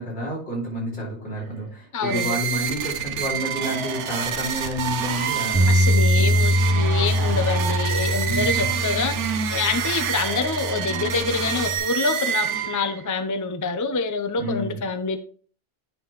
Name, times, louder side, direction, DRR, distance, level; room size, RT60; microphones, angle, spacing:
voice 1, 0.0-5.7 6.1-6.4 8.2-8.7 14.4-14.8, equal, 80° left, 3.4 m, -30 dB
voice 2, 1.9-2.4 5.7-9.1 9.5-15.2, left 4 dB, 25° left, 0.5 m, -26 dB
sound 1, 2.0-13.1, right 8 dB, 90° right, 1.1 m, -27 dB
Bass guitar, 5.5-11.8, left 1 dB, 5° right, 2.3 m, -23 dB
9.5 x 5.6 x 3.1 m
omnidirectional pair, 1.2 m